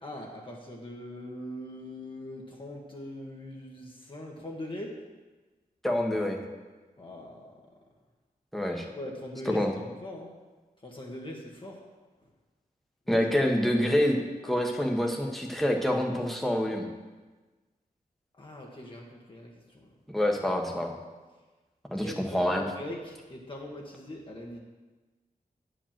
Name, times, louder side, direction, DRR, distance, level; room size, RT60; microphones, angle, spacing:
voice 1, 0.0-5.0 7.0-7.6 8.9-10.3 10.8-11.9 13.1-13.4 18.4-19.9 22.0-24.6, left 1 dB, 35° left, -1 dB, 1.4 m, -41 dB
voice 2, 5.8-6.4 8.5-8.8 9.5-9.7 13.1-16.9 20.1-20.9 21.9-22.6, left 1 dB, ahead, 1 dB, 1.3 m, -27 dB
9.8 x 5.2 x 7.4 m, 1.3 s
wide cardioid pair, 110°, 15 cm